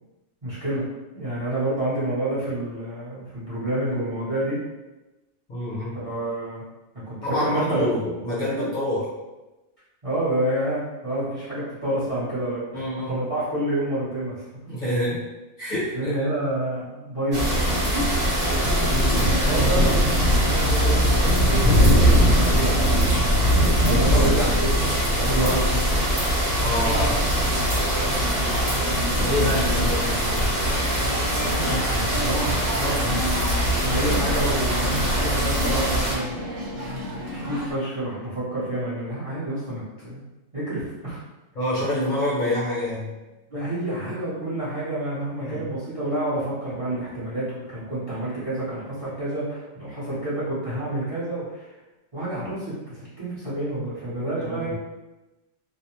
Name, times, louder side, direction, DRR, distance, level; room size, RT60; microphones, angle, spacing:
voice 1, 0.4-0.8 1.1-4.6 5.9-6.6 7.1-7.9 10.0-12.8 13.1-14.4 15.9-18.1 18.5-18.7 19.1-23.0 23.8-24.9 25.1-25.8 26.9-27.1 29.4-29.8 31.4-33.3 33.8-36.3 37.3-40.2 40.5-41.2 43.5-51.7 52.1-54.7, right 1 dB, 30° right, -10 dB, 0.8 m, -28 dB
voice 2, 5.5-5.9 7.2-9.1 12.7-13.2 14.7-15.3 15.6-16.1 18.9-19.3 25.3-25.6 26.6-27.1 29.2-30.5 41.5-43.2 45.4-45.7 54.4-54.7, left 1 dB, 45° left, -8 dB, 0.9 m, -27 dB
sound 1, 17.3-36.2, equal, 50° right, 1.1 m, -21 dB
sound 2, 27.7-37.7, equal, 85° right, 1.0 m, -32 dB
2.5 x 2.0 x 2.9 m, 1.1 s
omnidirectional pair, 1.3 m